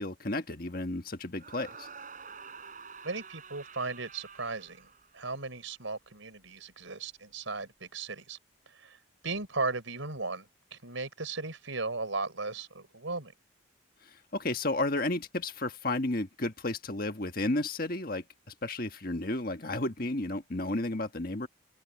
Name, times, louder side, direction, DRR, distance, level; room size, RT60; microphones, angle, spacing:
voice 1, 0.0-1.9 14.3-18.2 18.6-21.5, left 2 dB, 45° left, 1.6 m, -32 dB
sound 1, 1.4-5.5, right 5 dB, 40° right, 5.3 m, -48 dB
voice 2, 3.0-8.4 8.7-9.0 9.2-13.3, right 3 dB, 85° right, 5.0 m, -36 dB
open air
head